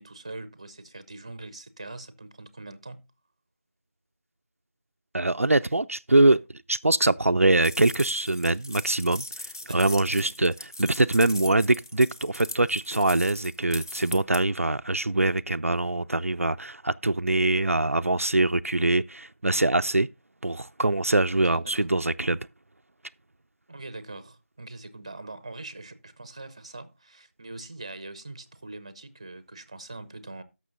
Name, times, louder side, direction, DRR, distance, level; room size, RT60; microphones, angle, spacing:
voice 1, 0.0-3.1 9.6-10.3 21.3-21.6 23.7-30.4, right 2 dB, 25° right, 0.7 m, -42 dB
voice 2, 5.1-6.4 6.7-9.2 9.7-10.5 10.8-20.1 20.4-22.4, right 2 dB, 70° right, 0.4 m, -23 dB
sound 1, 7.6-14.4, left 1 dB, 15° left, 0.5 m, -40 dB
13.0 x 6.1 x 3.8 m
figure-of-eight pair, 170°, 8 cm